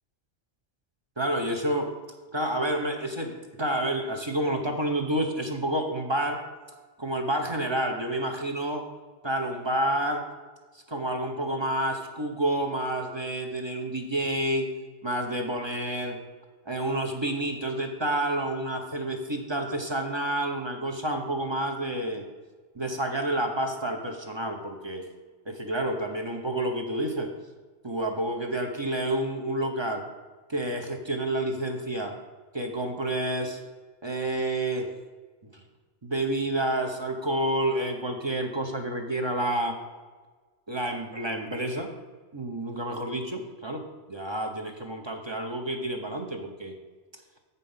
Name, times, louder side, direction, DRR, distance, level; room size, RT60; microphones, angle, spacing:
voice 1, 1.2-1.9 2.3-6.5 7.0-8.9 9.2-10.3 10.7-14.7 15.0-16.2 16.7-22.2 22.7-25.0 25.5-27.3 27.8-30.0 30.5-32.1 32.5-33.6 34.0-34.9 35.5-35.6 36.0-39.8 40.7-41.9 42.3-43.8 44.1-46.7, right 1 dB, 25° right, 3 dB, 0.8 m, -29 dB
8.0 x 5.5 x 5.6 m, 1.4 s
omnidirectional pair, 1.2 m